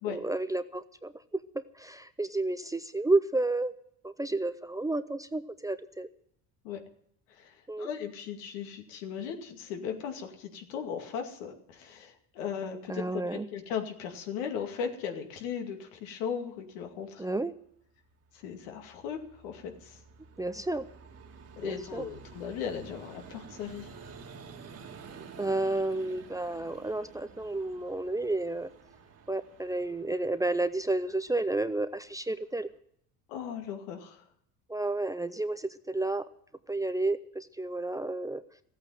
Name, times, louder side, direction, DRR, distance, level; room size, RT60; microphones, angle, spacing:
voice 1, 0.1-3.7 4.0-6.1 7.7-7.9 12.9-13.5 17.2-17.5 20.4-20.9 21.6-22.1 25.4-28.7 29.3-32.7 34.7-36.3 36.7-38.4, right 2 dB, 10° right, 11 dB, 0.6 m, -31 dB
voice 2, 7.3-17.2 18.3-20.0 21.6-23.9 33.3-34.2, left 7 dB, 80° left, 4 dB, 2.5 m, -37 dB
Vehicle, 18.0-32.7, right 5 dB, 40° right, 1.8 m, -51 dB
14.5 x 8.5 x 9.2 m, 0.69 s
supercardioid pair, 100°, 39 cm